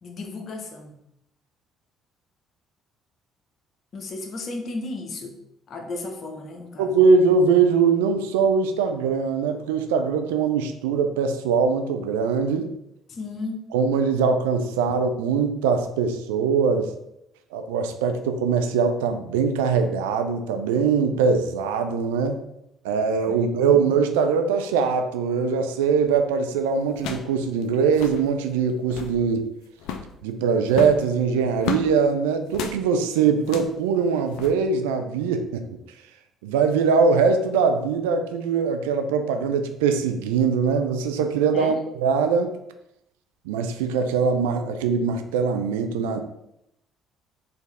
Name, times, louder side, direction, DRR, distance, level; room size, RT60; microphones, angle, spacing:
voice 1, 0.0-1.0 3.9-5.4 5.7-7.0 13.1-13.6 14.9-15.0 23.3-23.8 41.5-41.8, left 2 dB, 50° left, 3 dB, 0.8 m, -35 dB
voice 2, 6.8-12.7 13.7-16.9 17.5-22.4 22.8-29.5 30.2-35.6 36.4-42.6 43.5-46.2, right 5 dB, 70° right, 7 dB, 0.4 m, -22 dB
sound 1, 26.0-26.2 26.9-27.4 27.6-27.7 27.9-28.2 28.7-29.2 29.8-30.1 30.7-31.9 32.5-32.8 33.4-33.8 34.3-34.5, left 6 dB, 65° left, 0.4 m, -33 dB
4.5 x 2.6 x 3.4 m, 0.81 s
figure-of-eight pair, 50°, 0 cm